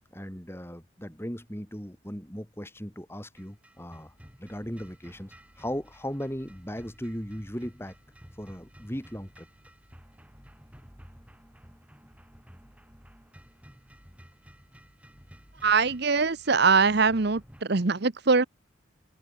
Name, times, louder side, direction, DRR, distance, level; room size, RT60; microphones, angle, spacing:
voice 1, 0.1-7.9 8.3-9.5, equal, 10° left, 4.5 m, -37 dB
sound 1, 3.3-17.6, equal, 5° right, 7.8 m, -53 dB
voice 2, 15.6-18.4, right 4 dB, 50° right, 0.9 m, -22 dB
head